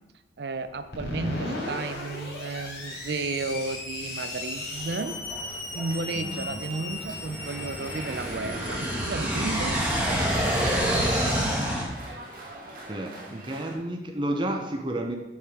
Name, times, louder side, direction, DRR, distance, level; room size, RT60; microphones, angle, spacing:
voice 1, 0.4-5.2 5.7-9.9, right 3 dB, 70° right, 11 dB, 0.5 m, -33 dB
Screech, 0.9-11.4, left 2 dB, 75° left, 3.1 m, -37 dB
sound 1, 3.0-3.1 3.7-3.8 4.5-11.8, equal, 10° right, 1.3 m, -28 dB
sound 2, 4.7-13.8, right 1 dB, 50° right, 1.8 m, -44 dB
voice 2, 6.1-6.6 12.9-15.2, right 1 dB, 30° right, 3 dB, 0.7 m, -31 dB
7.2 x 5.7 x 4.8 m, 1.0 s
head